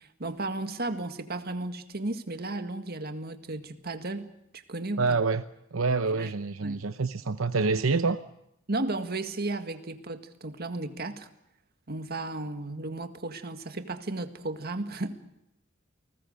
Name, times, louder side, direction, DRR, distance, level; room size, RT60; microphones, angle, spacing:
voice 1, 0.0-4.3 4.5-5.2 6.1-6.3 6.6-6.8 8.7-11.3 11.9-15.2, right 2 dB, 50° right, 8 dB, 1.8 m, -34 dB
voice 2, 5.0-5.4 5.7-8.2, right 4 dB, 85° right, 11 dB, 0.8 m, -26 dB
29.5 x 20.0 x 6.6 m, 0.82 s
head